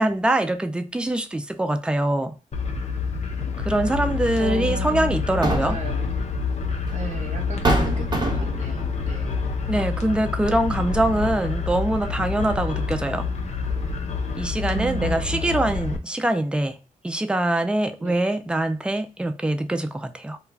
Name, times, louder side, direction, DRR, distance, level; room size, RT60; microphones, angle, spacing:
voice 1, 0.0-2.3 3.6-5.8 9.7-13.3 14.3-16.8 17.0-20.4, right 1 dB, 5° right, 0.3 m, -24 dB
sound 1, 2.5-16.0, left 5 dB, 50° left, 0.6 m, -27 dB
sound 2, 4.0-4.2 5.2-5.9 7.0-7.1 7.7-8.7, right 1 dB, 30° right, 0.7 m, -24 dB
voice 2, 4.4-6.1 6.9-9.4 14.7-15.8 18.0-18.2, right 4 dB, 60° right, 0.9 m, -35 dB
2.3 x 2.2 x 3.2 m
cardioid pair, 85°, 14 cm